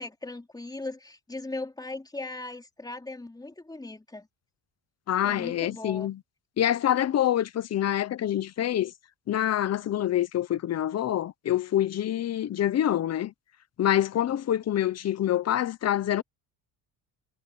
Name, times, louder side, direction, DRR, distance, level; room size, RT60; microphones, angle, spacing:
voice 1, 0.0-4.3 5.2-6.1, left 2 dB, 10° left, 3.5 m, -38 dB
voice 2, 5.1-6.2 6.6-8.9 9.3-13.3 13.8-16.2, left 11 dB, 35° left, 0.7 m, -26 dB
cardioid pair, 160°, 46 cm